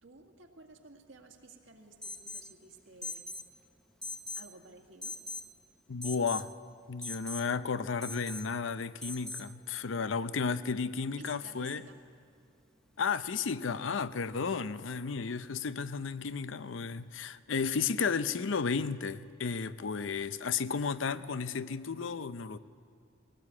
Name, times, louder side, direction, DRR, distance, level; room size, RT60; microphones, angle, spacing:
voice 1, 0.0-3.4 4.3-5.2 11.2-12.0, right 3 dB, 75° right, 3 dB, 2.0 m, -54 dB
Alarm, 2.0-2.5 3.0-3.5 4.0-4.5 5.0-5.5 6.0-6.5 7.0-7.5 8.0-8.5 9.0-9.5, left 2 dB, 5° left, 0.8 m, -40 dB
voice 2, 5.9-6.5 6.9-11.8 13.0-22.6, left 5 dB, 70° left, 14 dB, 0.6 m, -33 dB
20.5 x 17.5 x 8.5 m, 2.4 s
head